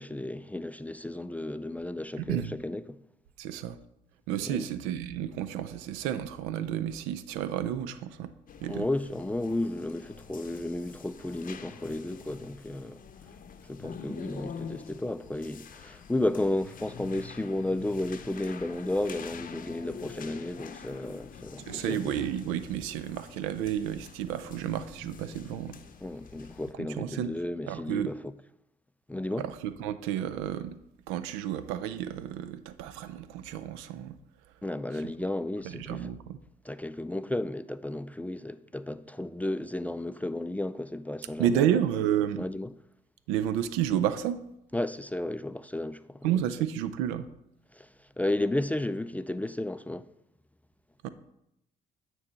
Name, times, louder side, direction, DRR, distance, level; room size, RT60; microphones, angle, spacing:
voice 1, 0.0-3.0 4.5-4.7 8.7-13.0 13.7-22.1 26.0-28.2 29.1-29.5 34.6-36.1 36.6-41.8 42.4-42.7 44.7-46.3 47.7-47.9 48.2-50.1, left 1 dB, 5° left, 0.3 m, -33 dB
voice 2, 2.2-2.5 3.4-3.8 4.3-8.3 8.6-8.9 21.7-25.8 26.8-27.3 27.7-28.1 29.4-30.7 31.1-34.1 34.9-35.0 35.6-36.4 41.4-42.5 43.3-44.4 46.2-47.3 51.0-51.1, right 10 dB, 80° right, 0.5 m, -31 dB
sound 1, 8.5-26.7, left 6 dB, 45° left, 0.7 m, -46 dB
9.3 x 3.1 x 5.6 m
hypercardioid pair, 50°, 20 cm